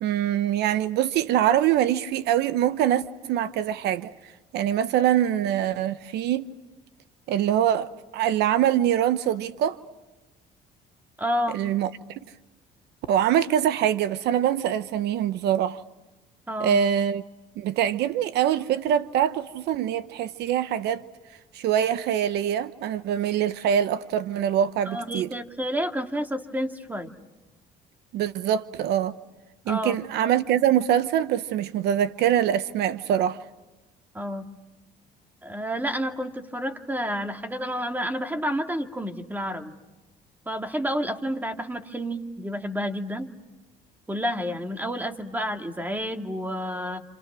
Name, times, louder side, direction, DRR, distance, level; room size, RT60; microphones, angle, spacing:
voice 1, 0.0-4.1 4.5-6.5 7.3-9.8 11.5-11.9 13.1-15.8 16.6-17.2 17.6-21.0 21.5-25.3 28.1-29.1 29.7-33.4, right 10 dB, 80° right, 1.0 m, -24 dB
voice 2, 11.2-11.6 16.5-16.8 24.9-27.1 29.7-30.0 34.1-34.5 35.4-39.7 40.5-43.3 44.1-47.0, equal, 10° right, 2.2 m, -30 dB
28.5 x 28.5 x 6.2 m
cardioid pair, 110°, 17 cm